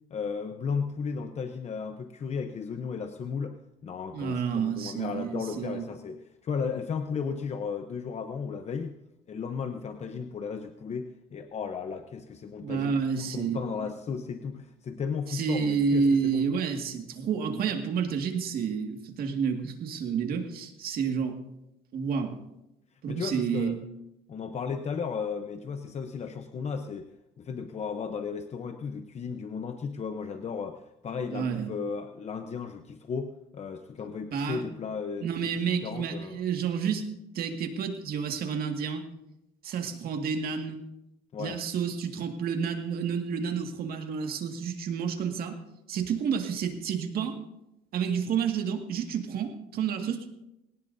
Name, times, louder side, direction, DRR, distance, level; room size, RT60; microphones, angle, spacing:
voice 1, 0.1-9.0 9.3-16.5 23.1-23.8 24.3-27.1 27.4-36.4 41.3-41.6, left 5 dB, 40° left, 7 dB, 0.9 m, -35 dB
voice 2, 4.1-5.9 12.6-13.6 15.3-21.4 21.9-22.4 23.0-23.8 31.3-31.7 34.3-34.6 35.2-37.1 37.3-39.0 39.6-40.8 41.4-45.6 45.9-47.4 47.9-50.3, right 6 dB, 60° right, 4 dB, 2.0 m, -30 dB
21.5 x 18.0 x 2.7 m, 0.88 s
cardioid pair, 110°, 17 cm